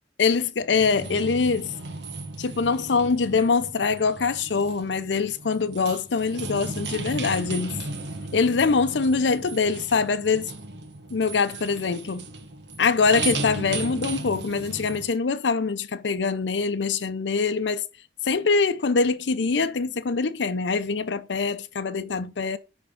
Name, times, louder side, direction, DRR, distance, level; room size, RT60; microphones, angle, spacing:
voice 1, 0.2-1.7 2.4-7.8 8.3-10.5 11.1-12.3 12.8-17.8 18.2-22.6, left 4 dB, 80° left, 0.6 m, -24 dB
sound 1, 0.7-15.1, right 3 dB, 75° right, 1.2 m, -36 dB
10.5 x 3.6 x 5.1 m
head